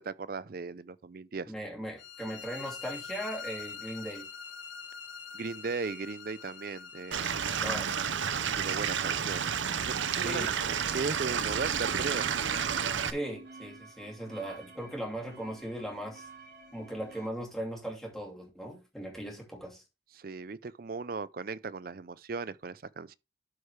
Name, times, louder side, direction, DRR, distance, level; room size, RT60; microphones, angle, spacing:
voice 1, 0.0-1.5 5.3-7.3 8.6-9.5 9.8-12.3 20.1-23.1, right 4 dB, 50° right, 0.5 m, -37 dB
voice 2, 1.4-4.3 7.6-8.0 10.2-10.5 13.0-16.3 16.7-19.8, right 1 dB, ahead, 2.7 m, -38 dB
sound 1, 2.0-7.8, left 6 dB, 75° left, 1.1 m, -44 dB
Stream / Liquid, 7.1-13.1, right 7 dB, 80° right, 0.7 m, -31 dB
sound 2, 10.0-17.3, right 3 dB, 65° right, 4.3 m, -51 dB
12.5 x 4.8 x 3.3 m
head